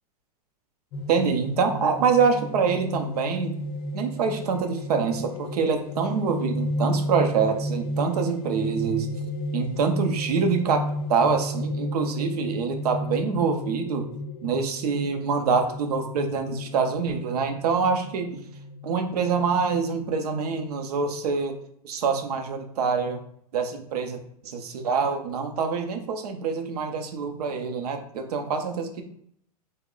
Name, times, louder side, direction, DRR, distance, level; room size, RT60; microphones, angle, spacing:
sound 1, 0.9-20.1, equal, 50° left, 0.6 m, -33 dB
voice 1, 1.1-3.6 3.9-9.1 9.5-10.8 11.1-14.0 14.4-18.4 18.8-21.6 21.8-23.2 23.5-24.2 24.4-29.0, right 5 dB, 75° right, 5 dB, 0.6 m, -25 dB
2.9 x 2.1 x 3.7 m, 0.68 s
hypercardioid pair, 130°, 20 cm